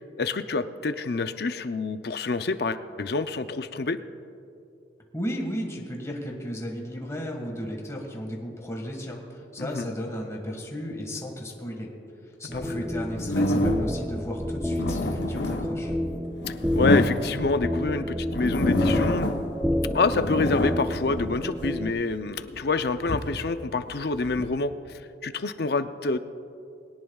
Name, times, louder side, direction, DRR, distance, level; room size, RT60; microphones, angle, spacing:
voice 1, 0.2-4.0 9.6-9.8 12.5-12.8 16.7-19.3 19.9-26.2, left 3 dB, 60° left, 11 dB, 0.6 m, -27 dB
voice 2, 5.1-11.9 12.4-16.0, equal, 15° left, 0 dB, 1.7 m, -34 dB
sound 1, 12.5-21.9, equal, 5° right, 0.4 m, -30 dB
sound 2, 13.2-14.0 14.6-17.8 18.2-19.6 19.9-21.8 22.4-24.5, left 1 dB, 80° left, 1.0 m, -27 dB
21.5 x 18.0 x 2.4 m, 2.6 s
head